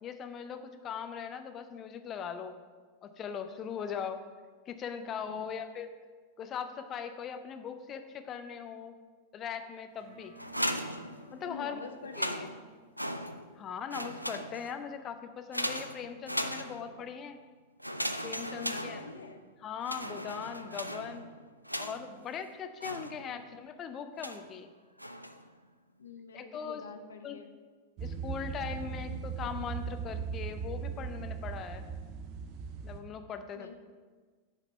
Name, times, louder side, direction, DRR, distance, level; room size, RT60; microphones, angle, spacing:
voice 1, 0.0-2.6 3.0-4.2 4.7-5.9 6.4-9.0 9.3-10.3 11.3-12.5 13.6-17.4 18.2-19.0 19.6-21.3 21.8-24.7 26.3-26.8 27.2-27.4 28.0-31.9 32.8-33.7, left 7 dB, 30° left, 8 dB, 0.6 m, -40 dB
voice 2, 5.2-5.6 11.4-12.6 18.5-19.4 23.4-23.5 26.0-27.5 33.5-33.7, left 4 dB, 70° left, 6 dB, 0.8 m, -46 dB
sound 1, 9.9-14.9, right 2 dB, 60° right, 2.4 m, -60 dB
sound 2, 10.4-11.6 12.0-13.6 13.9-14.9 15.5-17.1 17.8-19.5 19.8-22.2 22.8-23.5 24.2-24.6 25.0-25.5, equal, 90° right, 0.4 m, -38 dB
sound 3, 28.0-33.0, right 6 dB, 40° right, 0.8 m, -38 dB
8.5 x 5.0 x 5.6 m, 1.5 s
figure-of-eight pair, 90°, 0 cm